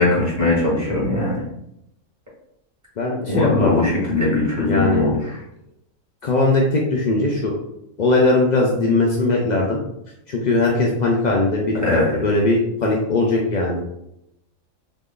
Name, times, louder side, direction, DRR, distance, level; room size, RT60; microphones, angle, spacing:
voice 1, 0.0-1.4 3.3-5.2 11.8-12.1, left 2 dB, 10° right, -7 dB, 1.4 m, -20 dB
voice 2, 3.0-3.8 4.7-5.1 6.2-7.5 8.0-9.8 10.3-13.8, left 2 dB, 90° left, -1 dB, 0.4 m, -19 dB
3.0 x 2.5 x 3.7 m, 0.80 s
omnidirectional pair, 1.5 m